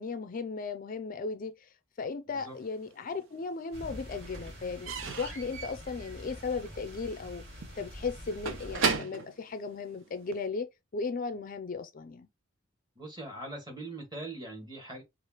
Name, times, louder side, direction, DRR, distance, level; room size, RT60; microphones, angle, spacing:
voice 1, 0.0-7.4 7.8-12.3, left 4 dB, 45° left, 0.4 m, -36 dB
Slam / Squeak / Wood, 2.6-3.4 3.7-10.5, right 5 dB, 80° right, 0.8 m, -37 dB
sound 1, 3.7-9.0, equal, 55° right, 2.5 m, -46 dB
voice 2, 12.9-15.0, right 2 dB, 20° right, 1.6 m, -41 dB
4.8 x 2.5 x 2.9 m
head